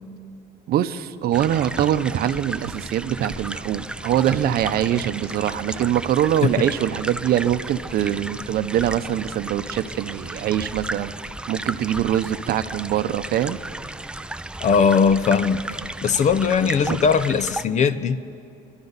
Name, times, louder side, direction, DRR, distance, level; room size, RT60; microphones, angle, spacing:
voice 1, 0.7-11.1 11.5-13.6 16.9-17.0, right 11 dB, 65° right, 0.7 m, -23 dB
sound 1, 1.3-17.6, right 2 dB, 5° right, 0.3 m, -34 dB
voice 2, 14.6-15.6 16.0-18.2, left 6 dB, 45° left, 0.6 m, -19 dB
26.0 x 12.0 x 4.0 m
cardioid pair, 110°, 17 cm